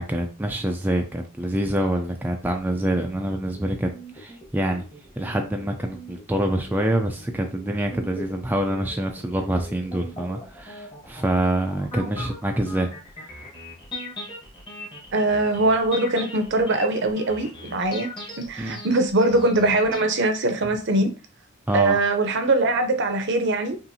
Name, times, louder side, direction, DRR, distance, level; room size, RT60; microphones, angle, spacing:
voice 1, 0.0-4.8 5.2-12.9 18.6-18.8 21.7-22.0, right 1 dB, 10° right, 0.4 m, -26 dB
sound 1, 2.5-20.1, equal, 20° left, 1.2 m, -40 dB
voice 2, 15.1-18.1 18.4-21.1 21.7-23.8, right 2 dB, 55° right, 0.7 m, -22 dB
5.5 x 2.5 x 2.7 m
head